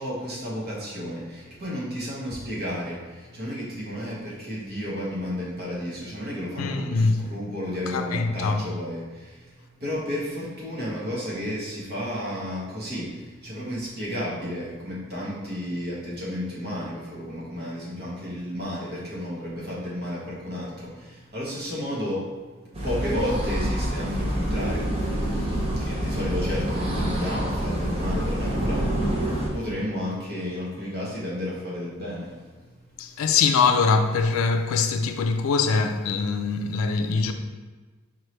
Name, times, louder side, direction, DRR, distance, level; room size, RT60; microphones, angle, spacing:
voice 1, 0.0-33.2, equal, 50° right, 1.3 m, -32 dB
voice 2, 6.6-7.2 7.9-8.7 33.0-37.3, left 5 dB, 75° left, 0.4 m, -23 dB
sound 1, 22.7-29.5, right 1 dB, 30° right, 0.7 m, -27 dB
4.5 x 3.0 x 3.2 m
head